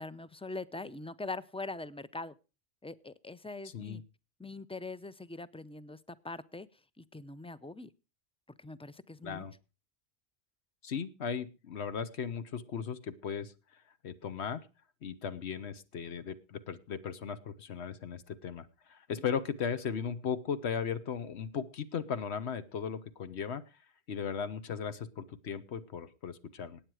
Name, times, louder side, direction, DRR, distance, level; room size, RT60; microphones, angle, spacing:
voice 1, 0.0-2.4 2.8-4.0 4.4-6.7 7.0-7.9 8.6-9.4, left 3 dB, 10° left, 16 dB, 0.3 m, -42 dB
voice 2, 9.2-9.5 10.8-14.6 15.0-23.6 24.1-26.8, left 7 dB, 80° left, 12 dB, 1.2 m, -37 dB
15.5 x 9.2 x 4.8 m, 0.32 s
omnidirectional pair, 1.1 m